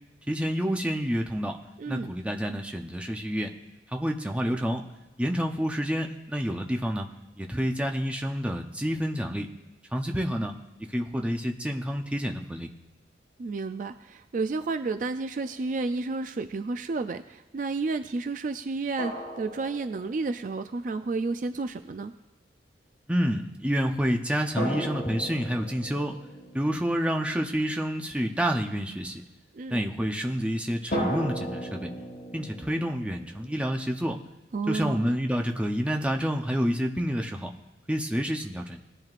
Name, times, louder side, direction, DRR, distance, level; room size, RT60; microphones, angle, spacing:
voice 1, 0.3-1.6 1.9-3.5 3.9-4.9 5.2-7.1 7.4-9.5 9.9-12.7 23.1-26.2 26.5-29.2 29.7-31.9 32.3-34.2 34.7-37.5 37.9-38.8, equal, 5° right, 3 dB, 0.7 m, -28 dB
voice 2, 1.8-2.1 13.4-22.1 29.5-29.8 34.5-35.1, right 3 dB, 45° right, 9 dB, 0.3 m, -31 dB
sound 1, 15.4-15.5 19.0-20.5 24.6-28.2 30.9-33.7, equal, 50° left, 4.4 m, -36 dB
19.0 x 10.5 x 2.5 m, 1.1 s
head